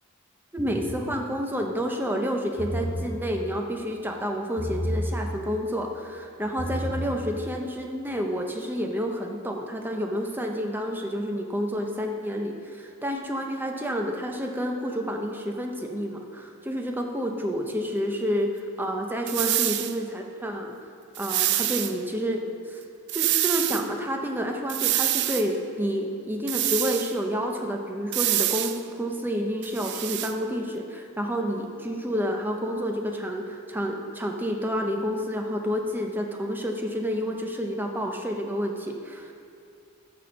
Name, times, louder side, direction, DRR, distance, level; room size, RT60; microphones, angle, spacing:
voice 1, 0.5-20.7 21.2-22.8 23.1-39.3, equal, 10° right, 2 dB, 0.6 m, -29 dB
sound 1, 0.6-1.1 2.4-3.1 4.6-5.1 6.4-7.1, equal, 15° left, 2.4 m, -30 dB
sound 2, 19.3-20.0 21.2-21.9 23.1-23.9 24.7-25.5 26.5-27.1 28.1-28.8 29.6-30.3, right 13 dB, 50° right, 0.4 m, -26 dB
12.5 x 4.4 x 5.2 m, 2.5 s
head